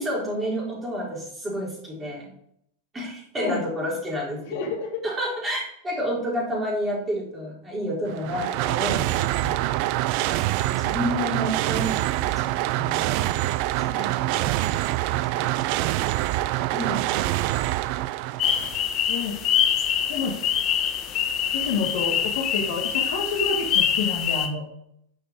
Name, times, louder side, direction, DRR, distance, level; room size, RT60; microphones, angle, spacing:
voice 1, 0.0-2.3 2.9-4.7 5.0-9.6 10.7-13.0 13.8-15.5 16.7-17.3, equal, 15° right, -3 dB, 4.1 m, -30 dB
voice 2, 3.4-3.7 4.5-5.0 19.1-19.4 20.1-20.4 21.5-24.6, left 4 dB, 55° left, 2 dB, 1.8 m, -29 dB
sound 1, 8.1-18.9, right 16 dB, 45° right, 0.4 m, -25 dB
sound 2, 18.4-24.5, left 9 dB, 35° left, 1.1 m, -25 dB
11.5 x 5.9 x 4.9 m, 0.72 s
figure-of-eight pair, 90°, 0 cm